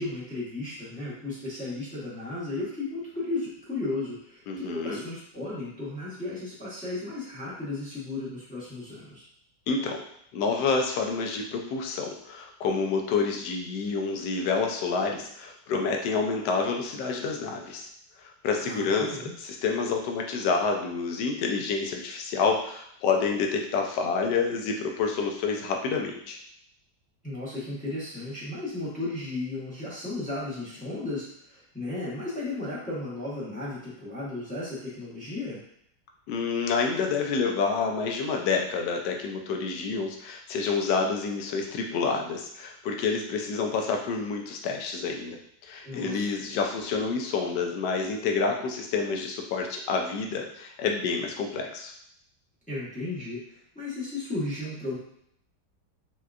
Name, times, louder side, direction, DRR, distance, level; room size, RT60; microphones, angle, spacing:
voice 1, 0.0-9.2 18.6-19.3 27.2-35.6 45.8-46.3 52.7-55.0, left 2 dB, 5° left, -9 dB, 0.6 m, -34 dB
voice 2, 4.5-5.0 9.7-10.0 10.3-17.9 18.2-26.4 36.3-51.9, left 4 dB, 80° left, 2 dB, 1.2 m, -28 dB
4.3 x 2.2 x 2.4 m, 0.71 s
omnidirectional pair, 1.8 m